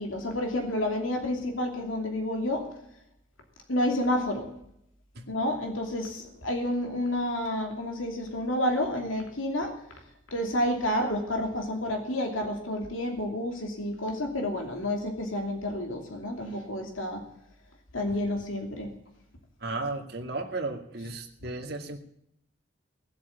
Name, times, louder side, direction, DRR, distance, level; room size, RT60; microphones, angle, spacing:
voice 1, 0.0-2.7 3.7-4.5 5.3-9.7 10.3-17.2 17.9-18.9, left 1 dB, 80° left, 3 dB, 2.9 m, -30 dB
voice 2, 19.6-22.0, right 3 dB, 50° right, 1 dB, 2.2 m, -34 dB
18.0 x 7.9 x 9.4 m, 0.74 s
head